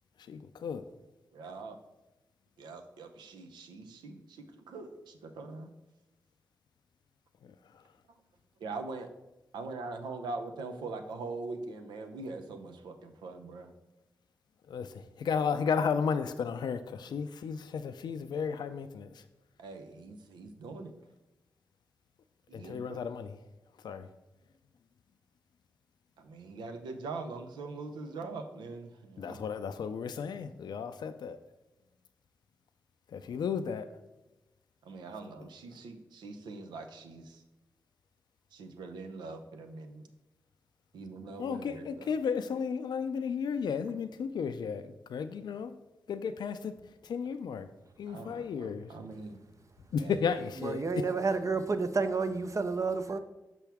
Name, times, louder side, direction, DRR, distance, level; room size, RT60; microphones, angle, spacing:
voice 1, 0.3-0.8 14.7-14.9 15.2-19.1 22.5-23.4 23.8-24.0 29.2-31.4 33.1-33.9 41.4-44.8 45.1-45.7 46.1-46.7 47.1-47.7 48.0-48.9 49.9-50.8, left 6 dB, 70° left, 0.4 m, -33 dB
voice 2, 1.3-1.8 2.6-5.7 8.6-9.1 9.5-13.7 19.6-20.9 22.5-23.0 26.2-29.4 34.8-37.4 38.5-40.1 40.9-42.1 48.1-49.4 50.0-50.2, right 3 dB, 90° right, 0.6 m, -42 dB
voice 3, 50.6-53.2, right 4 dB, 45° right, 0.6 m, -30 dB
6.1 x 5.8 x 3.4 m
supercardioid pair, 40°, 7 cm